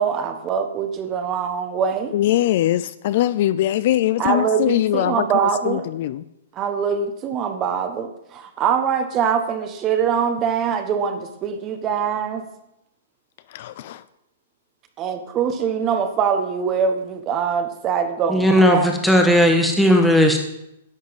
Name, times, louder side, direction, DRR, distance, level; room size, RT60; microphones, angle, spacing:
voice 1, 0.0-2.1 4.2-5.8 6.5-12.4 15.0-19.0, right 7 dB, 25° right, 7 dB, 1.2 m, -23 dB
voice 2, 2.1-5.3 5.7-6.2 13.5-14.0, left 13 dB, 50° left, 15 dB, 0.4 m, -21 dB
voice 3, 18.3-20.4, equal, ahead, 3 dB, 1.6 m, -16 dB
11.0 x 6.3 x 8.0 m, 0.83 s
hypercardioid pair, 155°, 0 cm